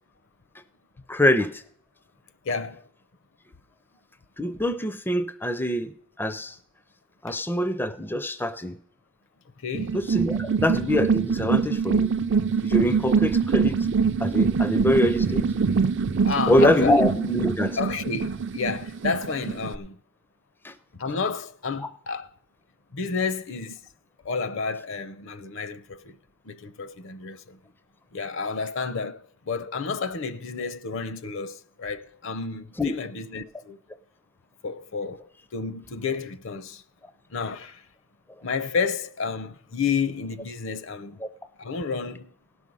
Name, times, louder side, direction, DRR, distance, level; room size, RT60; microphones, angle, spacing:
voice 1, 1.1-1.6 4.4-5.9 6.2-6.6 7.2-8.8 9.9-12.1 12.6-13.7 14.2-15.5 16.5-17.8 20.6-20.7 32.8-32.9 41.2-41.3, left 1 dB, 10° left, 0.4 m, -24 dB
voice 2, 2.4-2.9 9.6-10.0 16.1-17.0 17.8-20.0 20.9-22.3 22.9-23.8 24.2-26.1 26.4-27.6 28.1-33.8 34.6-36.8 37.3-37.8 38.4-41.2 41.6-42.3, left 5 dB, 60° left, 0.6 m, -31 dB
sound 1, 9.7-19.8, right 5 dB, 55° right, 0.5 m, -24 dB
17.0 x 6.2 x 5.4 m
head